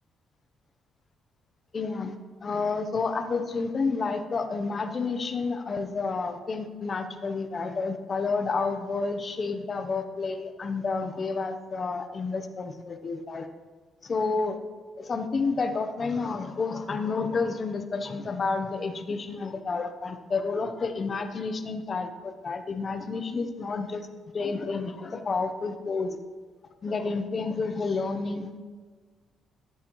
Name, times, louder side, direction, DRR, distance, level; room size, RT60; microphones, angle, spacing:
voice 1, 1.7-2.2 2.4-13.5 14.0-14.6 15.0-24.0 24.3-26.2 26.8-28.6, left 4 dB, 40° left, 8 dB, 0.9 m, -30 dB
12.5 x 8.0 x 3.1 m, 1.5 s
cardioid pair, 90°, 0 cm